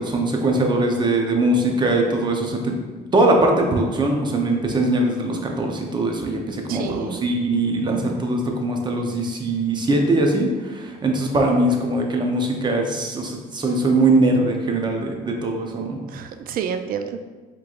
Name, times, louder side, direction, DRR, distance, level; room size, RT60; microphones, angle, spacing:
voice 1, 0.0-2.8 3.1-16.0, right 2 dB, 25° right, 1 dB, 0.7 m, -21 dB
voice 2, 6.7-7.2 7.9-8.2 16.1-17.3, right 7 dB, 60° right, 8 dB, 0.4 m, -30 dB
4.5 x 3.7 x 2.5 m, 1.3 s
cardioid pair, 110°, 17 cm